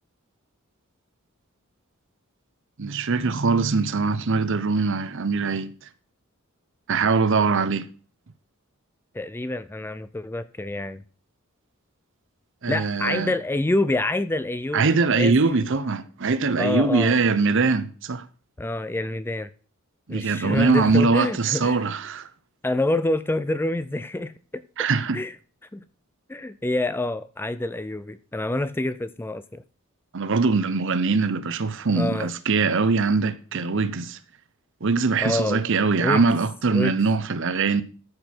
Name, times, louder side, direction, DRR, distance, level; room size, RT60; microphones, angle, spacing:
voice 1, 2.8-5.7 6.9-7.9 12.6-13.3 14.7-18.2 20.1-22.3 24.8-25.2 30.1-34.2 34.8-37.8, right 4 dB, 60° right, 0.7 m, -22 dB
voice 2, 9.1-11.0 12.7-15.3 16.6-17.2 18.6-19.5 20.1-21.8 22.6-24.6 25.1-25.4 25.7-25.8 26.3-29.6 31.9-32.3 35.2-35.6 36.0-36.2 36.7-37.0, left 2 dB, 10° left, 0.4 m, -27 dB
13.0 x 6.2 x 4.5 m
head